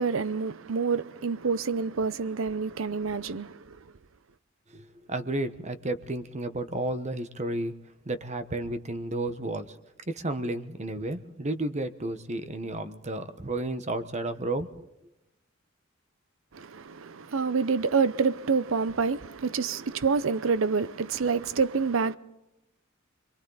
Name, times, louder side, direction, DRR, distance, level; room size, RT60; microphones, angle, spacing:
voice 1, 0.0-3.5 16.5-22.2, right 5 dB, 75° right, 0.7 m, -27 dB
voice 2, 4.7-7.7 8.1-9.7 10.1-14.7, right 2 dB, 35° right, 1.1 m, -32 dB
30.0 x 23.0 x 4.0 m
head